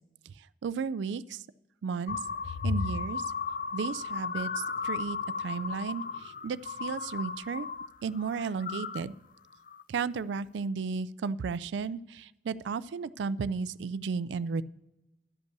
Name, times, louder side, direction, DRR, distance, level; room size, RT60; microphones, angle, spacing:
voice 1, 0.6-1.4 1.8-2.2 2.6-3.2 3.7-7.7 8.0-9.1 9.9-14.6, right 5 dB, 85° right, 17 dB, 0.4 m, -34 dB
sound 1, 2.1-7.9 8.2-9.0 9.5-9.8, left 5 dB, 50° left, 0.4 m, -35 dB
12.0 x 5.4 x 6.6 m, 0.96 s
head